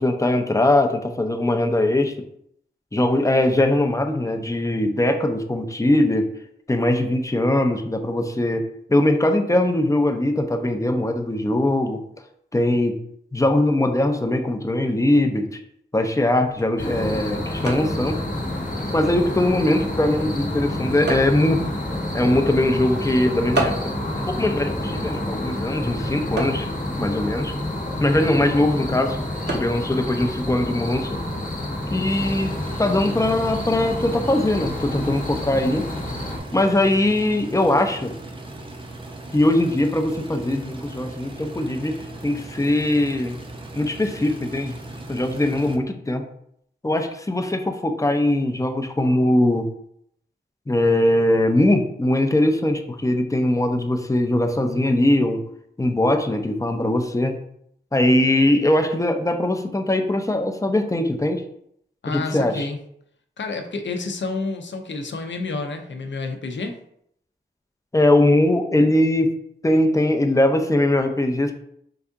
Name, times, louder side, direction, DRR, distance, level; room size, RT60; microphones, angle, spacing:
voice 1, 0.0-2.1 2.9-6.3 6.7-12.0 12.5-13.0 13.3-15.6 15.9-18.2 18.9-21.6 22.1-23.7 24.3-26.7 27.0-27.5 28.0-29.2 29.5-31.2 31.9-35.9 36.5-38.1 39.3-42.0 42.2-43.4 43.7-44.8 45.1-46.2 46.8-49.7 50.7-55.4 55.8-57.4 57.9-61.4 62.1-62.7 67.9-69.3 69.6-71.5, left 1 dB, 15° left, 5 dB, 0.5 m, -21 dB
sound 1, 16.1-31.6, right 2 dB, 65° right, 0.9 m, -36 dB
sound 2, 16.8-36.4, left 1 dB, 45° left, 0.9 m, -29 dB
sound 3, 32.1-45.8, right 2 dB, 30° right, 0.6 m, -38 dB
voice 2, 62.0-62.8 63.4-66.8, left 3 dB, 75° left, 5 dB, 0.6 m, -29 dB
4.7 x 2.7 x 3.5 m, 0.71 s
wide cardioid pair, 95°, 19 cm